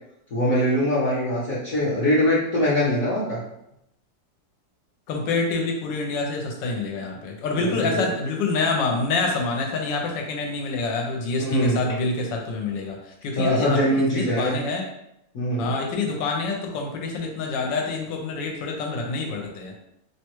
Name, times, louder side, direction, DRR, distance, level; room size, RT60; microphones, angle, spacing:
voice 1, 0.3-3.4 7.7-8.0 11.4-11.8 13.3-14.5 15.3-15.7, equal, 60° left, -9 dB, 1.0 m, -22 dB
voice 2, 5.1-14.9 15.6-19.7, left 3 dB, 75° left, 1 dB, 1.3 m, -27 dB
3.1 x 2.2 x 2.9 m, 0.81 s
omnidirectional pair, 2.0 m